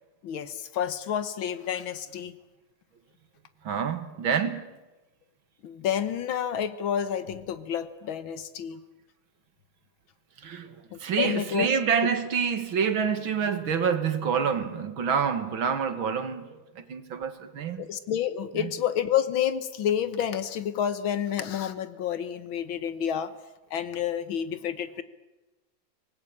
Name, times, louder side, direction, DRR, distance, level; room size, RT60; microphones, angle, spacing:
voice 1, 0.2-2.3 5.6-8.8 10.9-11.7 17.8-23.3 23.7-25.0, left 9 dB, 80° left, 1.8 m, -29 dB
voice 2, 3.6-4.7 10.4-10.7 11.0-17.8 18.5-18.7, right 7 dB, 80° right, 2.5 m, -27 dB
25.0 x 19.0 x 8.7 m
omnidirectional pair, 2.2 m